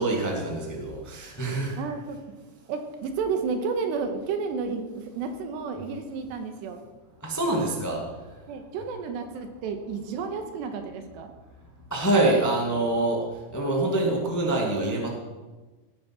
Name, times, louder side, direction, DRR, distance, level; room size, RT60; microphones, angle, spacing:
voice 1, 0.0-1.8 7.2-8.0 11.9-13.2 13.5-15.1, right 2 dB, 25° left, 0 dB, 0.3 m, -25 dB
voice 2, 1.8-2.2 2.7-6.8 8.5-11.3, right 5 dB, 80° right, 6 dB, 3.3 m, -31 dB
18.0 x 9.4 x 6.1 m, 1.2 s
omnidirectional pair, 5.1 m